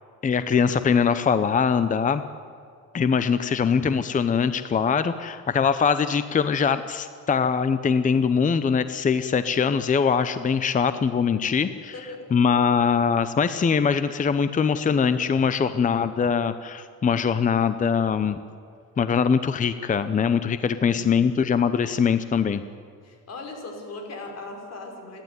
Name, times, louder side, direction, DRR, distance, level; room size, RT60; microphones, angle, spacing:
voice 1, 0.2-2.2 2.9-11.9 12.3-18.4 19.0-22.6, left 6 dB, 25° left, 12 dB, 0.8 m, -22 dB
voice 2, 11.9-12.3 20.8-21.2 23.0-25.2, left 2 dB, 50° left, 3 dB, 5.0 m, -39 dB
29.5 x 12.0 x 9.6 m, 2.4 s
cardioid pair, 135°, 32 cm